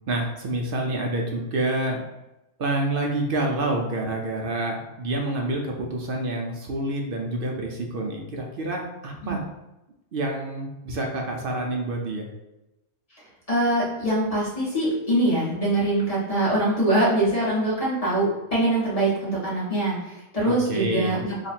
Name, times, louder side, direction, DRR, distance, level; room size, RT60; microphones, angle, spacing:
voice 1, 0.1-2.0 2.6-9.4 10.1-12.3 20.4-21.2, right 2 dB, 60° right, 1 dB, 0.6 m, -28 dB
voice 2, 13.5-21.3, right 1 dB, 30° left, -7 dB, 1.4 m, -23 dB
3.0 x 2.4 x 4.2 m, 0.96 s
omnidirectional pair, 1.3 m